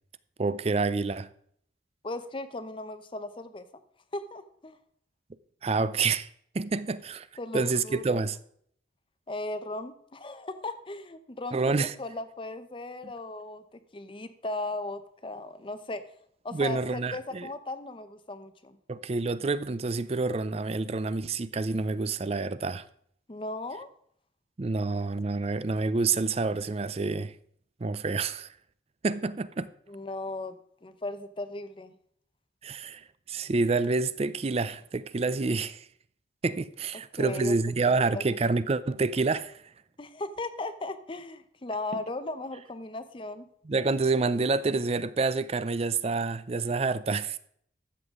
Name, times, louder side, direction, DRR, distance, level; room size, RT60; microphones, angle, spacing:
voice 1, 0.4-1.3 5.6-6.3 6.5-7.3 7.5-8.4 11.5-11.9 13.0-13.1 16.5-17.5 18.9-22.8 24.6-27.3 27.8-28.5 29.0-29.7 32.6-35.8 36.4-39.6 43.7-47.4, right 3 dB, 35° right, 0.4 m, -28 dB
voice 2, 2.0-3.6 4.1-4.8 7.4-8.2 9.3-16.0 16.4-18.8 23.3-23.9 29.9-31.9 37.2-37.6 37.9-38.4 40.0-43.4, left 2 dB, 25° left, 0.6 m, -37 dB
13.0 x 7.9 x 3.6 m
head